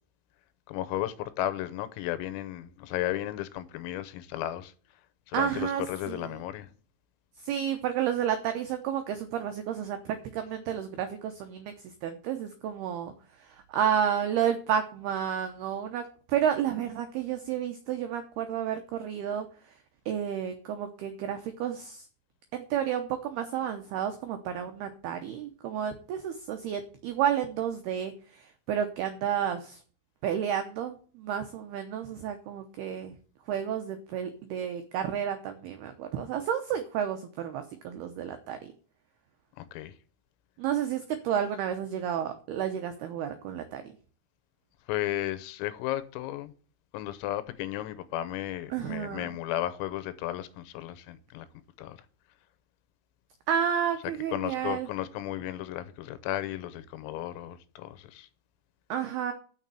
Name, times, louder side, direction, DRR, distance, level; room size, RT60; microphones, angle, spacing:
voice 1, 0.7-4.7 5.3-6.7 39.6-39.9 44.9-46.5 46.9-51.5 51.8-52.0 54.3-58.3, left 13 dB, 90° left, 3.6 m, -34 dB
voice 2, 5.3-6.3 7.4-11.7 12.0-13.1 13.4-19.5 20.1-22.1 22.5-29.8 30.2-33.2 33.5-38.7 40.6-43.8 48.7-49.3 53.5-54.9 58.9-59.3, right 9 dB, 90° right, 2.2 m, -31 dB
7.2 x 6.6 x 7.5 m
omnidirectional pair, 5.9 m